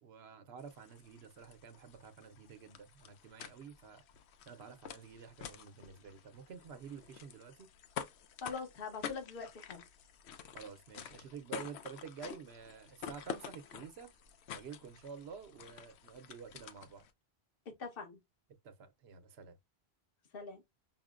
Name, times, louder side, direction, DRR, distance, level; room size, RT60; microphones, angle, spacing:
voice 1, 0.0-4.0 4.5-7.7 10.5-14.1 14.5-17.0 18.6-19.6, right 6 dB, 80° right, 0.9 m, -50 dB
sound 1, 0.6-17.1, left 8 dB, 85° left, 0.8 m, -49 dB
voice 2, 8.4-9.8 17.8-18.2 20.3-20.6, left 5 dB, 60° left, 1.1 m, -43 dB
5.6 x 2.1 x 2.4 m
omnidirectional pair, 1.1 m